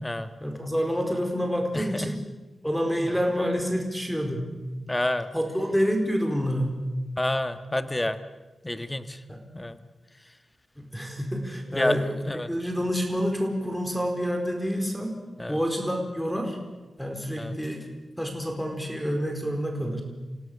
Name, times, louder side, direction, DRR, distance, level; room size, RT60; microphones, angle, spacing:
voice 1, 0.4-2.2 2.6-4.5 5.3-6.8 9.3-9.4 10.8-12.1 12.5-15.2 15.5-16.6 17.0-17.9 18.2-20.0, equal, 5° left, 3 dB, 4.5 m, -28 dB
voice 2, 1.7-2.1 3.0-3.1 4.9-5.3 7.2-8.2 8.6-9.2 9.5-9.8 11.7-12.0 12.3-12.5 15.4-15.6 17.4-17.5, left 1 dB, 20° left, 10 dB, 1.6 m, -28 dB
27.5 x 17.0 x 6.8 m, 1.2 s
cardioid pair, 50°, 0 cm